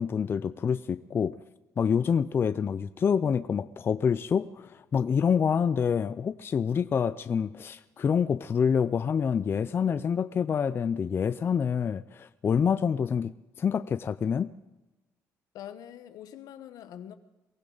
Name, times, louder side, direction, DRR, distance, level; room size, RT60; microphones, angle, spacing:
voice 1, 0.0-1.4 1.8-14.5, left 7 dB, 40° left, 14 dB, 0.4 m, -27 dB
voice 2, 15.5-17.2, left 10 dB, 80° left, 11 dB, 1.1 m, -44 dB
23.0 x 15.5 x 3.9 m, 1.1 s
cardioid pair, 110°, 6 cm